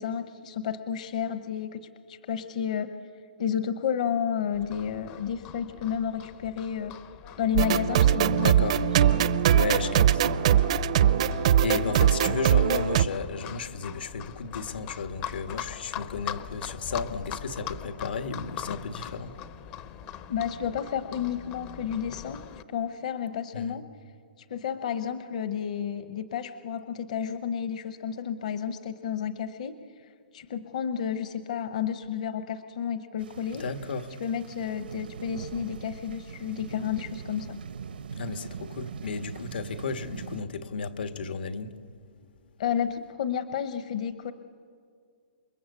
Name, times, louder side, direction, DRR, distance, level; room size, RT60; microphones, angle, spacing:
voice 1, 0.0-3.0 3.4-7.0 7.4-8.5 8.8-8.9 20.3-22.4 22.7-23.8 24.5-29.8 30.3-33.6 34.2-37.6 42.6-44.3, left 8 dB, 45° left, 1.0 m, -31 dB
Livestock farm animals working animals, 4.5-22.6, left 9 dB, 20° left, 0.6 m, -42 dB
sound 1, 7.6-13.1, right 10 dB, 40° right, 0.6 m, -21 dB
voice 2, 8.3-8.8 9.5-10.2 10.5-10.6 11.6-19.4 23.5-23.8 33.6-34.1 38.2-41.8, left 5 dB, 80° left, 1.7 m, -33 dB
sound 2, 33.2-40.4, right 7 dB, 75° right, 1.0 m, -42 dB
28.5 x 23.5 x 8.4 m
hypercardioid pair, 175°, 5 cm